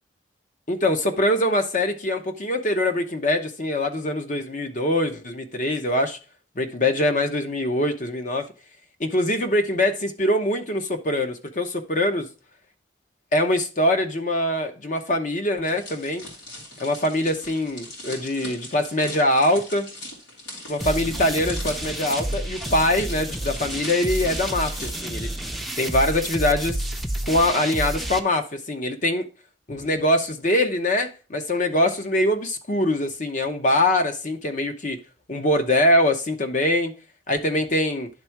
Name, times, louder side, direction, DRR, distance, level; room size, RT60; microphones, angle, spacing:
voice 1, 0.7-6.2 6.6-8.5 9.0-12.2 13.3-16.2 16.8-19.9 20.7-25.3 25.8-26.8 27.3-29.2 29.7-35.0 35.3-36.9 37.3-38.1, left 1 dB, 45° left, 0.9 m, -23 dB
sound 1, 15.6-26.4 26.7-27.0, left 1 dB, 85° left, 3.2 m, -40 dB
sound 2, 20.8-28.2, right 1 dB, ahead, 0.5 m, -30 dB
10.5 x 3.6 x 4.5 m
head